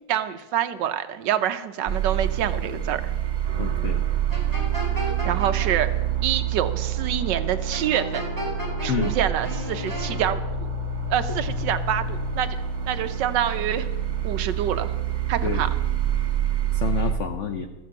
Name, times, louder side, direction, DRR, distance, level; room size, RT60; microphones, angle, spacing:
voice 1, 0.1-3.1 5.2-5.9 6.2-8.2 8.8-10.7 11.1-12.6 12.9-13.9 14.2-14.9 15.3-15.7, right 10 dB, 70° right, 10 dB, 1.2 m, -26 dB
sound 1, 1.9-17.1, right 8 dB, 55° right, 0.5 m, -27 dB
voice 2, 3.6-4.0 8.9-9.2 15.4-15.7 16.7-17.7, left 7 dB, 85° left, 7 dB, 0.6 m, -28 dB
sound 2, 4.3-5.7 7.7-9.1 9.4-10.2, right 1 dB, 10° left, 3.5 m, -33 dB
13.5 x 7.7 x 7.5 m, 1.2 s
omnidirectional pair, 2.2 m